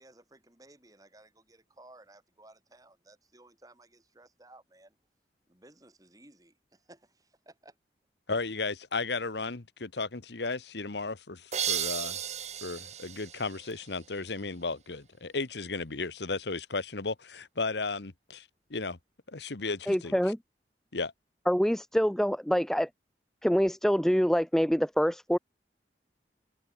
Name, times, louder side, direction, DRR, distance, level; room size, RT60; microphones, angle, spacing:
voice 1, 0.0-5.0 5.5-7.7, right 2 dB, 20° right, 4.2 m, -57 dB
voice 2, 8.3-12.2 12.6-19.0 19.3-20.1 20.9-21.1, left 3 dB, 80° left, 1.4 m, -34 dB
sound 1, 11.5-14.2, right 9 dB, 40° right, 2.7 m, -35 dB
voice 3, 19.9-20.4 21.5-22.9 23.4-25.4, equal, ahead, 0.5 m, -25 dB
head